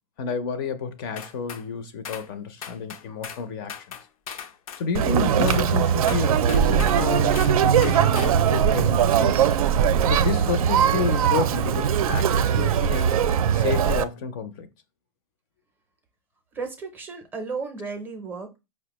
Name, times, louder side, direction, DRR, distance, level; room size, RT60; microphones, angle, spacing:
voice 1, 0.2-4.0 4.8-9.4 10.0-13.2 13.5-14.7, left 5 dB, 40° left, 0.4 m, -30 dB
sound 1, 1.2-1.6 2.0-2.3 2.6-3.4 3.7-4.9 5.5-5.7 6.1-7.0 7.3-7.6 7.8-8.4, left 8 dB, 85° left, 0.5 m, -38 dB
Conversation, 4.9-14.0, right 8 dB, 85° right, 0.4 m, -20 dB
voice 2, 16.5-18.6, right 4 dB, 10° right, 0.5 m, -34 dB
4.8 x 2.0 x 2.9 m
supercardioid pair, 160°, 18 cm